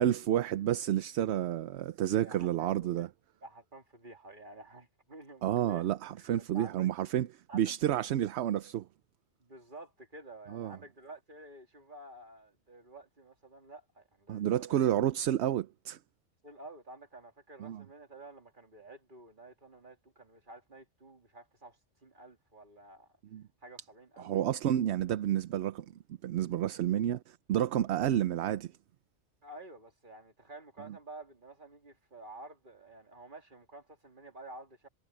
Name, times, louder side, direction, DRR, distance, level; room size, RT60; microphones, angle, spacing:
voice 1, 0.0-3.1 5.4-7.3 7.5-8.9 10.5-10.8 14.3-16.0 17.6-17.8 23.3-23.4 24.2-25.9 26.2-28.7, right 11 dB, 70° right, 0.9 m, -30 dB
voice 2, 2.2-3.0 3.4-5.9 6.2-6.9 7.5-7.7 9.4-14.9 16.4-23.2 23.6-24.4 29.4-34.9, right 2 dB, 45° right, 3.1 m, -51 dB
omnidirectional pair, 1.2 m